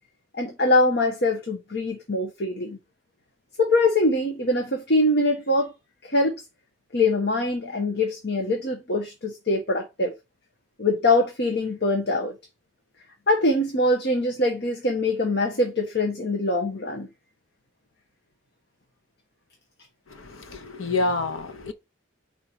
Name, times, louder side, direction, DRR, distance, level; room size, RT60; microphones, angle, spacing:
voice 1, 0.3-2.8 3.6-5.7 6.0-6.3 6.9-10.1 10.8-12.3 13.3-17.1, left 2 dB, 55° left, 1.2 m, -23 dB
voice 2, 20.1-21.7, left 3 dB, 80° left, 1.1 m, -28 dB
4.8 x 4.3 x 5.9 m
head